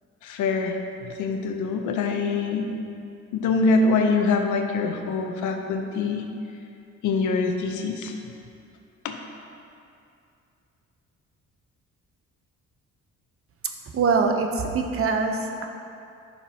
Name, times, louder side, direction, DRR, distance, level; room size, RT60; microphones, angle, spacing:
voice 1, 0.2-2.7 3.3-6.2 7.0-8.1 9.0-9.2, left 4 dB, 80° left, 4 dB, 0.8 m, -24 dB
voice 2, 13.9-15.7, right 4 dB, 45° right, 3 dB, 0.8 m, -23 dB
10.5 x 5.7 x 2.9 m, 2.6 s
cardioid pair, 90°, 30 cm